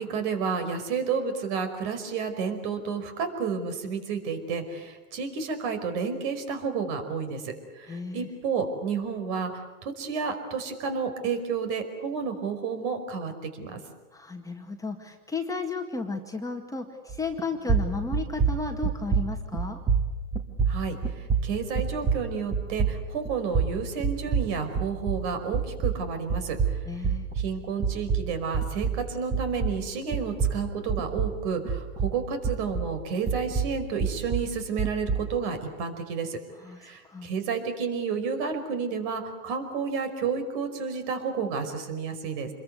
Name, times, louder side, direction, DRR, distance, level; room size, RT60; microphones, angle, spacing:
voice 1, 0.0-13.8 20.7-26.6 27.4-36.4 36.8-42.5, right 5 dB, 50° right, 8 dB, 5.2 m, -31 dB
voice 2, 7.9-8.3 14.1-19.8 26.9-27.3 36.6-36.8 37.0-37.3, left 3 dB, 10° left, 2 dB, 2.0 m, -33 dB
sound 1, 17.1-17.4 17.7-25.3 25.5-29.9 30.1-33.0 33.3-35.3, right 6 dB, 15° right, 2.3 m, -27 dB
27.0 x 22.0 x 8.2 m, 1.2 s
hypercardioid pair, 130°, 43 cm